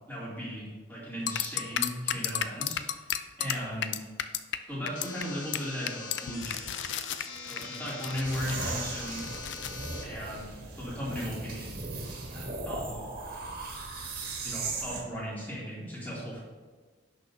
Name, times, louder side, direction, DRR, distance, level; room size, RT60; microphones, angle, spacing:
voice 1, 0.1-3.0 3.4-4.0 4.7-6.6 7.5-9.2 10.0-11.7 12.3-13.1 14.4-16.4, equal, 10° left, -7 dB, 2.8 m, -37 dB
sound 1, 1.3-4.6 4.9-5.2 5.5-5.6 5.9-9.9, left 10 dB, 60° left, 0.4 m, -33 dB
sound 2, 5.0-10.0, left 4 dB, 75° left, 1.2 m, -43 dB
sound 3, 8.2-15.0, right 3 dB, 45° right, 1.8 m, -37 dB
16.0 x 6.3 x 2.8 m, 1.4 s
head